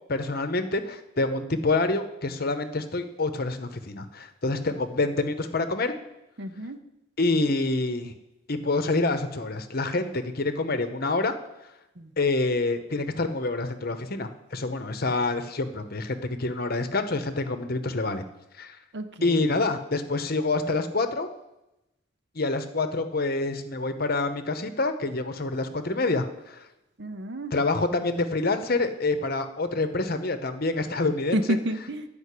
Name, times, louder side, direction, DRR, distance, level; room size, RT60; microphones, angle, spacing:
voice 1, 0.1-5.9 7.2-8.1 8.5-11.3 12.2-18.2 18.6-18.8 19.2-21.3 22.3-26.6 27.5-31.6, left 3 dB, 50° left, 9 dB, 0.9 m, -27 dB
voice 2, 6.4-6.8 12.0-12.1 18.9-19.4 27.0-27.5 31.3-32.1, right 1 dB, 60° right, 8 dB, 0.9 m, -30 dB
11.0 x 5.2 x 8.4 m, 0.90 s
head